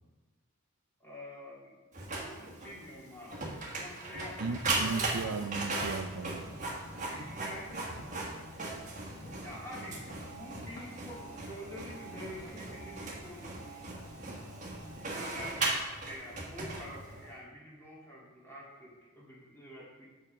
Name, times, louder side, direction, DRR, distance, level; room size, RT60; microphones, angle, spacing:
voice 1, 1.0-5.3 7.1-8.0 9.4-13.8 15.1-20.0, equal, 10° left, -6 dB, 2.1 m, -47 dB
Printer, 1.9-17.3, right 2 dB, 35° right, 1.4 m, -38 dB
voice 2, 4.4-6.5, right 4 dB, 75° right, 9 dB, 0.5 m, -36 dB
sound 1, 5.0-16.2, left 1 dB, 45° left, 1.2 m, -54 dB
7.2 x 5.4 x 5.2 m, 1.2 s
head